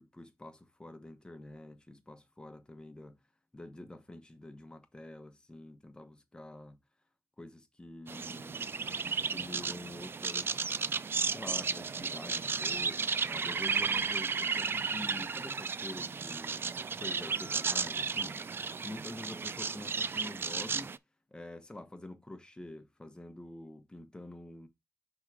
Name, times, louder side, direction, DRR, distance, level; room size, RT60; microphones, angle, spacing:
voice 1, 0.0-3.2 3.5-6.8 7.4-10.7 11.3-16.7 17.0-18.4 18.8-20.9 21.3-24.7, left 2 dB, 15° left, 1.0 m, -47 dB
sound 1, 8.1-21.0, right 5 dB, 40° right, 0.3 m, -34 dB
5.7 x 3.7 x 4.8 m
wide cardioid pair, 115°, 6 cm